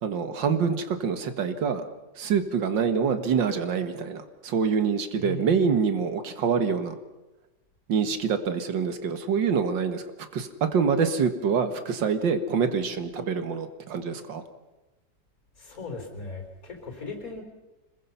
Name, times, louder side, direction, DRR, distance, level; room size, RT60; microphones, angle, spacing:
voice 1, 0.0-1.8 2.2-7.0 7.9-10.0 10.3-14.4, right 6 dB, 80° right, 9 dB, 2.1 m, -26 dB
voice 2, 5.2-5.7 15.6-17.4, left 2 dB, 50° left, 2 dB, 4.8 m, -37 dB
25.5 x 21.5 x 5.7 m, 1.1 s
omnidirectional pair, 2.0 m